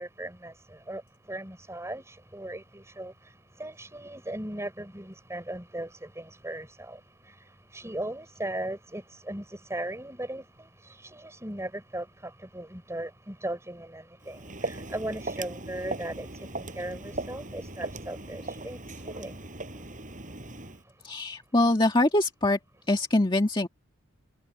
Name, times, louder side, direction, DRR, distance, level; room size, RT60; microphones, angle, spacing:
voice 1, 0.0-19.8 20.3-20.4, right 1 dB, 15° right, 5.4 m, -38 dB
Walk footsteps, 14.2-20.8, right 2 dB, 40° right, 6.1 m, -38 dB
voice 2, 21.0-22.6 22.9-23.7, left 1 dB, 25° left, 1.9 m, -23 dB
head